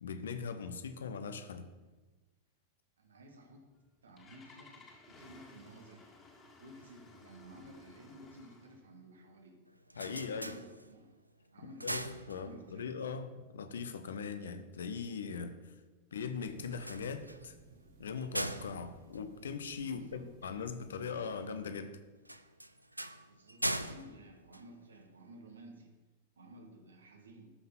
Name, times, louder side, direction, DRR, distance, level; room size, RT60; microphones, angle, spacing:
voice 1, 0.0-1.7 10.0-10.6 11.6-15.7 16.1-17.5 18.0-22.0, left 5 dB, 65° left, 10 dB, 0.9 m, -40 dB
voice 2, 3.0-3.6 4.0-6.1 6.6-9.6 10.0-11.1 11.5-12.0 12.3-12.9 19.9-20.3 23.3-25.9 26.4-27.5, right 1 dB, 70° right, 4 dB, 1.7 m, -54 dB
Engine starting, 3.7-8.8, left 3 dB, 20° left, 2.0 m, -58 dB
sound 1, 9.7-11.2 11.6-12.9 16.7-20.1 22.2-25.3, right 1 dB, 85° right, 0.5 m, -41 dB
sound 2, 16.4-21.6, right 4 dB, 45° right, 1.6 m, -59 dB
13.0 x 5.8 x 5.5 m, 1.2 s
figure-of-eight pair, 90°, 0 cm